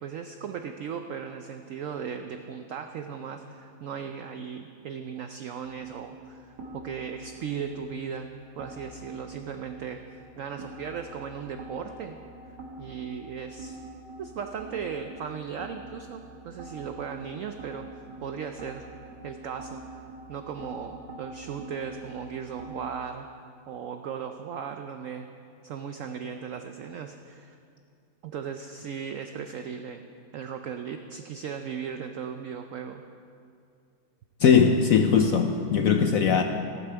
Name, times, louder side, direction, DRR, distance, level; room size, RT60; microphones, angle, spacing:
voice 1, 0.0-8.3 8.6-12.2 12.8-13.8 14.2-18.8 19.2-20.0 20.3-23.3 23.7-25.3 25.6-27.6 28.2-30.0 30.3-33.0, right 7 dB, 90° right, 7 dB, 0.7 m, -37 dB
sound 1, 5.6-23.0, right 2 dB, 65° right, 2.1 m, -45 dB
voice 2, 34.4-36.4, left 6 dB, 70° left, 6 dB, 0.8 m, -20 dB
14.5 x 12.0 x 4.6 m, 2.5 s
omnidirectional pair, 2.0 m